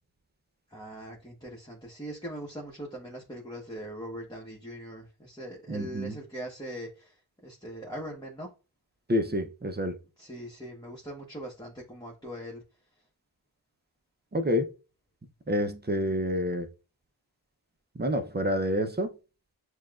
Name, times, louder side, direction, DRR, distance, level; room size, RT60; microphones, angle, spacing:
voice 1, 0.7-8.5 10.2-12.6, equal, 10° left, 1.1 m, -41 dB
voice 2, 5.7-6.2 9.1-10.0 14.3-14.7 15.5-16.7 18.0-19.1, equal, 20° right, 0.6 m, -28 dB
6.4 x 2.4 x 2.4 m
cardioid pair, 50°, 48 cm